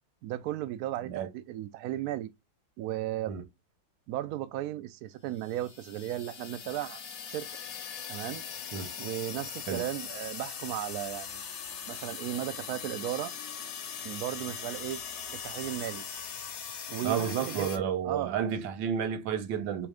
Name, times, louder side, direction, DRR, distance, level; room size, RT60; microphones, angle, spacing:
voice 1, 0.2-2.3 2.8-3.3 4.1-7.5 8.1-8.4 9.0-11.4 11.9-13.3 14.0-15.0 15.3-16.0 16.9-18.4, right 13 dB, 90° right, 0.8 m, -35 dB
sound 1, 5.3-17.8, left 7 dB, 60° left, 0.9 m, -40 dB
voice 2, 17.0-19.9, right 8 dB, 75° right, 1.4 m, -31 dB
3.5 x 3.2 x 4.8 m
omnidirectional pair, 2.2 m